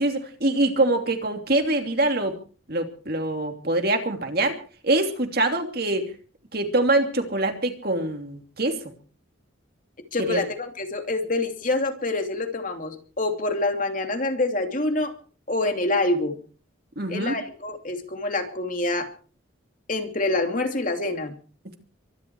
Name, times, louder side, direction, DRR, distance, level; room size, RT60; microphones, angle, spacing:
voice 1, 0.0-2.4 2.7-4.6 4.8-6.1 6.5-8.8 10.2-10.4 17.0-17.3, right 2 dB, 50° right, 5 dB, 2.9 m, -24 dB
voice 2, 10.1-15.1 15.5-16.4 17.1-19.1 19.9-21.3, left 2 dB, 40° left, 5 dB, 2.8 m, -26 dB
24.0 x 12.0 x 4.7 m, 0.40 s
head